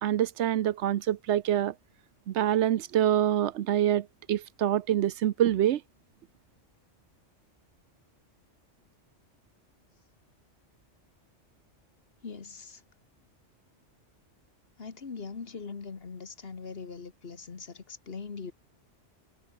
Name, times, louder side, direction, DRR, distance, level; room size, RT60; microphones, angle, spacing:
voice 1, 0.0-1.7 2.3-5.8, right 11 dB, 70° right, 0.9 m, -26 dB
voice 2, 12.2-12.8 14.8-18.5, left 5 dB, 55° left, 1.7 m, -41 dB
omnidirectional pair, 1.2 m